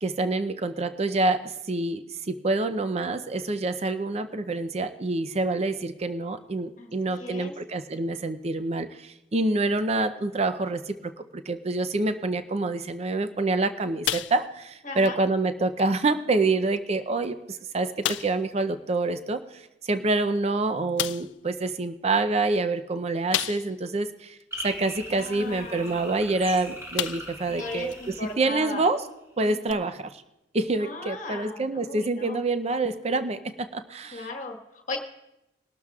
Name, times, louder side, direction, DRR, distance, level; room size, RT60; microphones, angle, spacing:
voice 1, 0.0-24.4 24.6-28.0 28.4-29.0 29.4-30.2 30.5-34.3, right 2 dB, 35° right, 10 dB, 0.5 m, -27 dB
voice 2, 6.8-7.5 14.8-15.2 25.1-26.0 27.5-28.8 29.4-29.8 30.8-32.4 34.1-35.0, left 2 dB, 40° left, 2 dB, 1.4 m, -37 dB
sound 1, 14.0-14.7 15.0-15.2 15.8-15.9 16.7-16.8 17.2-17.3 18.0-18.5 20.1-20.2 21.0-21.4 23.3-23.9 24.4-24.5 26.3-26.5 27.0-27.5 27.9-28.0 29.7-29.8, left 13 dB, 70° left, 0.3 m, -31 dB
sound 2, 24.5-29.0, equal, 15° right, 3.4 m, -40 dB
22.0 x 12.5 x 2.4 m, 0.91 s
head